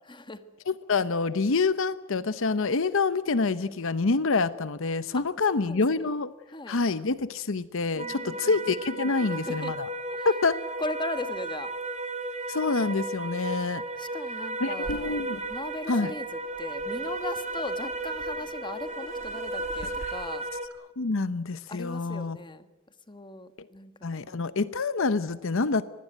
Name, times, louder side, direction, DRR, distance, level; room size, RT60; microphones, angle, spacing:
voice 1, 0.1-0.4 5.1-6.1 6.5-6.8 8.0-8.6 9.2-9.7 10.1-10.3 10.8-11.7 14.0-15.2 15.5-16.3 16.6-20.4 21.7-22.7 23.1-24.2, left 2 dB, 25° left, 11 dB, 1.4 m, -38 dB
voice 2, 0.7-6.3 6.7-9.9 10.2-10.6 12.5-13.8 14.6-15.4 15.9-16.1 20.0-20.1 21.0-22.4 24.0-25.8, left 4 dB, 65° left, 15 dB, 0.8 m, -27 dB
sound 1, 8.0-20.7, right 2 dB, 35° right, 2.6 m, -34 dB
Waves surf, 14.8-20.1, left 1 dB, 40° left, 2.7 m, -45 dB
24.5 x 19.5 x 9.1 m, 1.1 s
head